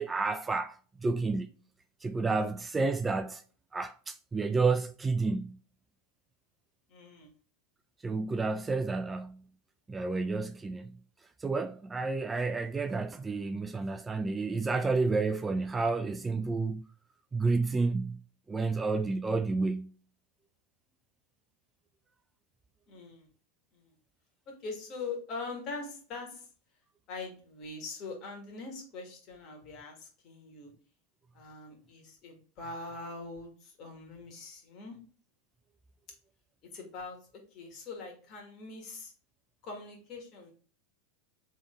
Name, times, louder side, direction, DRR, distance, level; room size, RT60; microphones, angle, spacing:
voice 1, 0.0-1.5 2.0-3.4 3.7-5.6 8.0-9.4 9.9-11.0 11.4-16.8 17.3-18.2 18.5-19.9, right 3 dB, 15° right, 0.3 m, -30 dB
voice 2, 6.9-7.3 22.9-23.3 23.7-23.9 24.5-26.5 27.1-30.7 31.3-35.0 36.7-37.2 37.5-39.1 39.6-40.5, left 3 dB, 45° left, 1.8 m, -42 dB
3.6 x 3.4 x 3.7 m
hypercardioid pair, 95°, 0 cm